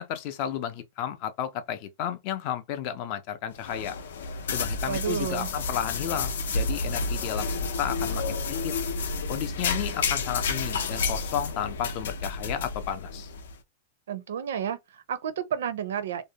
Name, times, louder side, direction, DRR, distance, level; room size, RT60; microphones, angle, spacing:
voice 1, 0.0-4.0 4.5-8.4 8.6-8.7 9.3-13.3, left 10 dB, 35° left, 0.4 m, -32 dB
sound 1, 3.5-13.5, left 4 dB, 85° left, 0.5 m, -30 dB
voice 2, 4.8-5.5 14.1-16.2, right 8 dB, 85° right, 0.5 m, -31 dB
2.5 x 2.0 x 2.7 m
supercardioid pair, 175°, 0 cm